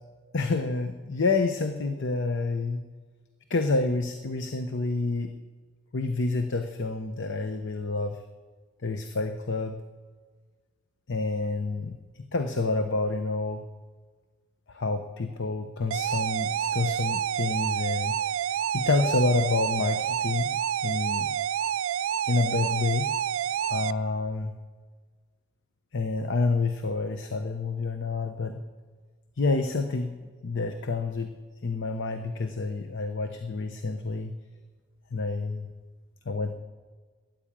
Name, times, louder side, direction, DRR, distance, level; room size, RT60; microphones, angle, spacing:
voice 1, 0.3-2.8 3.5-5.3 5.9-8.2 8.8-9.8 11.1-13.6 14.7-18.2 18.7-21.3 22.3-23.1 23.7-24.5 25.9-28.6 29.4-30.1 30.4-31.3 31.6-34.3 35.1-35.7 36.3-36.5, left 3 dB, 60° left, 7 dB, 0.8 m, -28 dB
sound 1, 15.9-23.9, right 9 dB, 65° right, 0.3 m, -28 dB
13.5 x 10.5 x 8.8 m, 1.5 s
head